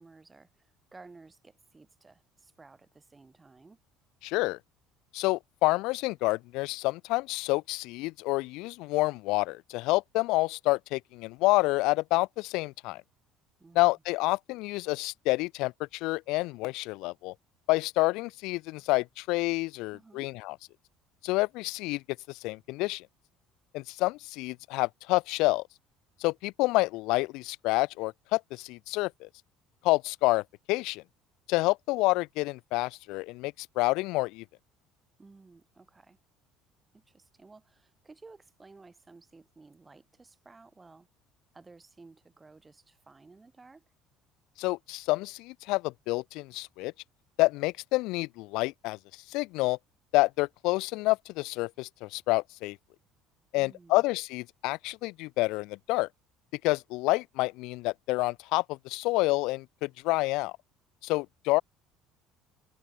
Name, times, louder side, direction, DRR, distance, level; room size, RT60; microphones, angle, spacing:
voice 1, 0.0-3.8 13.6-14.0 19.9-20.3 35.2-36.2 36.9-41.1 41.5-43.8 53.5-54.0, right 3 dB, 10° right, 2.4 m, -55 dB
voice 2, 4.2-4.6 5.1-13.0 13.8-17.3 17.7-20.5 21.2-22.0 22.3-23.1 23.7-25.6 26.2-29.3 29.8-31.0 31.5-34.4 44.6-46.9 47.4-49.0 49.3-49.8 50.1-52.8 53.5-56.1 56.6-60.5 61.0-61.6, left 22 dB, 70° left, 0.4 m, -28 dB
cardioid pair, 170°, 0 cm